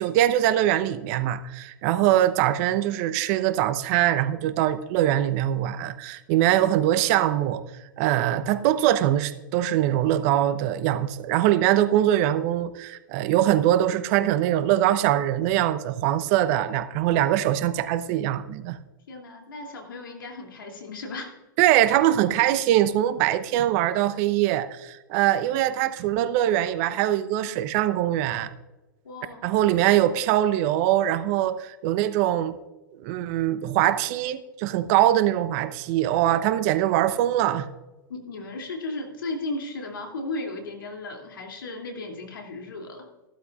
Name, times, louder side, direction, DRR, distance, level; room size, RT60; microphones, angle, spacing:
voice 1, 0.0-7.6 8.0-18.8 21.6-28.5 29.4-32.6 33.0-37.7, right 12 dB, 45° right, 12 dB, 0.8 m, -22 dB
voice 2, 19.1-21.3 29.0-29.5 38.1-43.1, left 2 dB, 75° left, 2 dB, 2.8 m, -35 dB
15.0 x 12.5 x 2.5 m, 1.1 s
hypercardioid pair, 110°, 11 cm